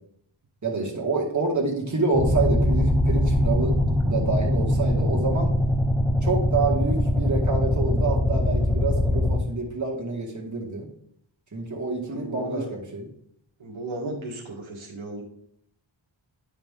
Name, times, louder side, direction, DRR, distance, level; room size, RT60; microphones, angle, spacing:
voice 1, 0.6-3.7 4.0-5.5 6.2-10.9 11.5-13.0, right 3 dB, 40° right, -1 dB, 2.0 m, -27 dB
sound 1, 2.1-9.4, left 1 dB, 5° left, 1.5 m, -22 dB
voice 2, 12.0-12.7 13.6-15.2, right 2 dB, 80° right, -2 dB, 1.6 m, -35 dB
10.0 x 4.8 x 3.7 m, 0.70 s
wide cardioid pair, 70°, 47 cm